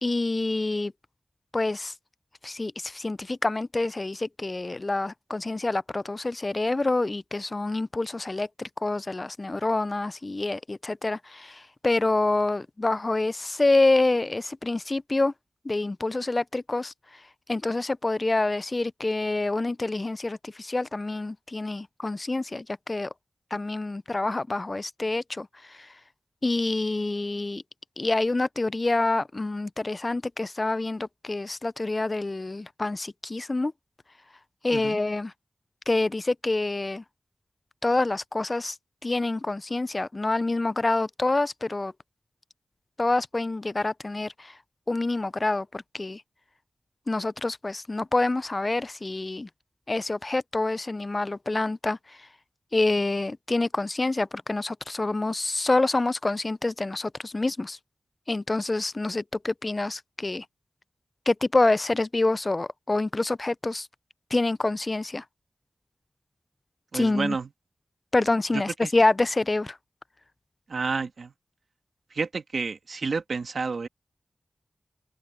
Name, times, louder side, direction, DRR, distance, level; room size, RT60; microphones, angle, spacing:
voice 1, 0.0-0.9 1.5-1.9 2.4-15.3 15.7-16.9 17.5-23.1 23.5-25.9 26.4-27.6 28.0-33.7 34.6-35.3 35.9-37.0 37.8-38.8 39.0-41.9 43.0-44.5 44.9-46.2 47.1-49.5 49.9-52.0 52.7-57.8 58.3-60.4 61.3-63.9 64.3-65.2 66.9-67.4 68.1-69.8, left 2 dB, 35° left, 0.3 m, -27 dB
voice 2, 66.9-67.5 68.5-68.9 70.7-71.3 72.1-73.9, right 4 dB, 85° right, 1.6 m, -30 dB
open air
wide cardioid pair, 75°, 0 cm